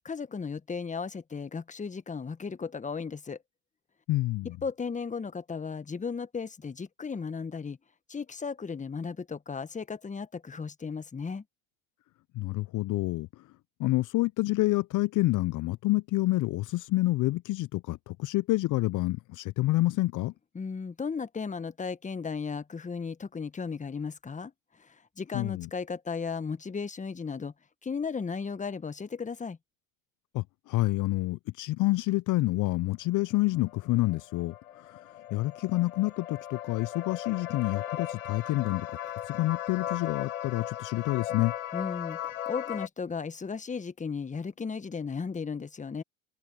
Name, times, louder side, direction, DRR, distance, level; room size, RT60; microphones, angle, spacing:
voice 1, 0.0-3.4 4.6-7.8 8.1-11.4 20.5-24.5 24.8-24.9 25.2-27.5 27.8-29.6 41.7-42.2 42.5-46.0, left 5 dB, 20° left, 1.5 m, -35 dB
voice 2, 4.1-4.6 12.3-13.3 13.8-20.3 25.3-25.7 30.3-35.0 35.3-38.9 39.3-41.5, left 19 dB, 45° left, 0.9 m, -28 dB
sound 1, 33.6-42.9, left 11 dB, 80° left, 4.1 m, -37 dB
hypercardioid pair, 75°, 41 cm